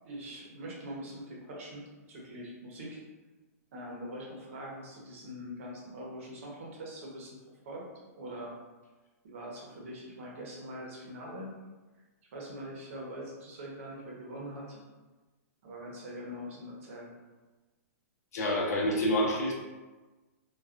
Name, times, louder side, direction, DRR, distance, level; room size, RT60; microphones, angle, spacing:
voice 1, 0.1-3.0 3.7-7.4 7.6-7.8 8.2-8.5 9.2-11.5 12.3-14.8 15.6-17.1, equal, 55° right, -3 dB, 0.8 m, -43 dB
voice 2, 18.3-19.5, equal, 75° left, -2 dB, 0.7 m, -27 dB
2.3 x 2.3 x 2.4 m, 1.2 s
hypercardioid pair, 160°, 9 cm